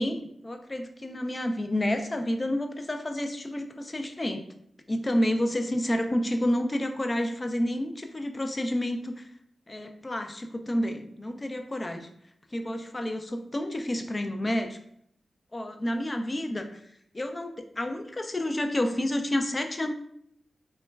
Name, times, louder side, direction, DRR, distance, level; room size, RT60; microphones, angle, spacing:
voice 1, 0.0-4.4 4.9-9.3 9.7-12.1 12.5-14.8 15.5-16.8 17.1-19.9, left 1 dB, 30° left, 6 dB, 0.3 m, -29 dB
2.9 x 2.1 x 2.2 m, 0.71 s
cardioid pair, 65°, 0 cm